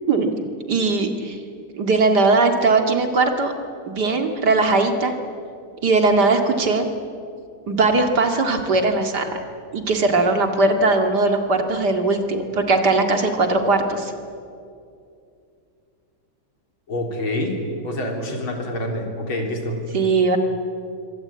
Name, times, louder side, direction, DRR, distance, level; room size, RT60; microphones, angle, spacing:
voice 1, 0.7-1.4 1.7-3.5 3.9-5.2 5.8-6.9 7.7-9.4 9.7-14.1 19.9-20.4, right 3 dB, 55° right, 5 dB, 2.7 m, -19 dB
voice 2, 16.9-17.6 17.8-19.8, left 1 dB, 85° left, 2 dB, 4.6 m, -26 dB
26.0 x 24.5 x 8.8 m, 2.5 s
omnidirectional pair, 2.2 m